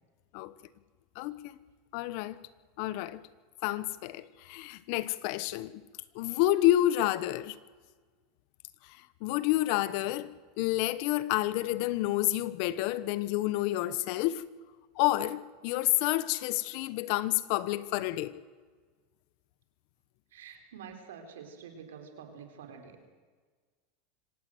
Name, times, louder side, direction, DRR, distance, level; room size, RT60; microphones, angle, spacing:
voice 1, 1.2-1.6 1.9-2.4 2.8-3.2 3.6-5.8 6.1-7.6 9.2-10.3 10.6-14.5 15.0-18.3, left 15 dB, 60° left, 1.0 m, -29 dB
voice 2, 20.3-23.1, right 7 dB, 90° right, 4.1 m, -48 dB
25.5 x 17.0 x 7.9 m
supercardioid pair, 120°, 0 cm